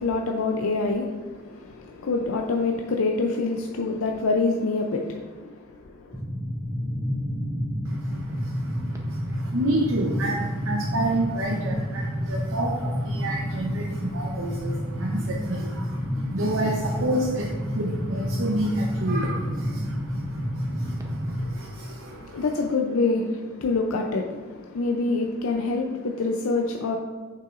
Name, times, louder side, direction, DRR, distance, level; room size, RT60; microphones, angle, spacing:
voice 1, 0.0-6.2 21.4-27.0, left 3 dB, 90° left, 0.5 m, -26 dB
sound 1, 6.1-21.4, equal, 15° right, 0.7 m, -30 dB
voice 2, 7.8-22.4, right 1 dB, 70° right, 0.7 m, -29 dB
7.6 x 5.8 x 2.5 m
head